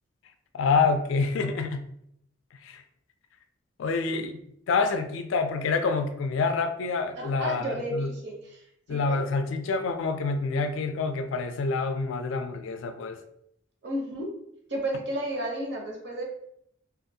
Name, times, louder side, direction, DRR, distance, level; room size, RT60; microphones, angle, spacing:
voice 1, 0.5-1.8 2.6-2.8 3.8-4.4 4.7-8.1 8.9-13.2, left 4 dB, 70° left, 7 dB, 0.3 m, -27 dB
voice 2, 7.1-8.6 8.9-9.2 13.8-14.3 14.7-16.2, right 1 dB, 55° right, 0 dB, 0.7 m, -32 dB
2.5 x 2.4 x 2.6 m, 0.73 s
head